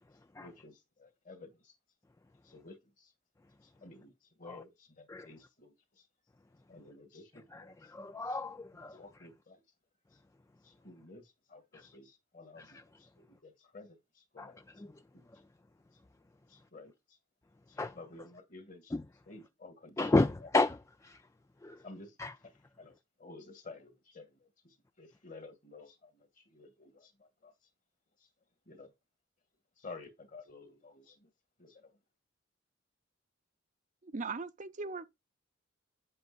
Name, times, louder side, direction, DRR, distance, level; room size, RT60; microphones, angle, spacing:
voice 1, 0.4-1.7 2.4-3.1 3.6-6.1 6.7-7.7 8.7-9.6 10.6-14.9 15.1-15.2 16.5-16.9 17.7-18.9 19.3-20.2 21.8-22.2 22.8-27.5 28.7-28.9 29.8-31.3 31.6-31.9, left 3 dB, 45° left, 1.9 m, -53 dB
voice 2, 7.9-9.0 11.7-11.8 12.6-12.8 14.4-14.5 14.8-15.0 17.8-18.0 18.9-19.0 20.0-21.2 21.6-21.8 22.2-22.3, left 2 dB, 15° left, 0.4 m, -32 dB
voice 3, 34.0-35.0, right 4 dB, 40° right, 0.6 m, -39 dB
9.2 x 7.6 x 2.4 m
head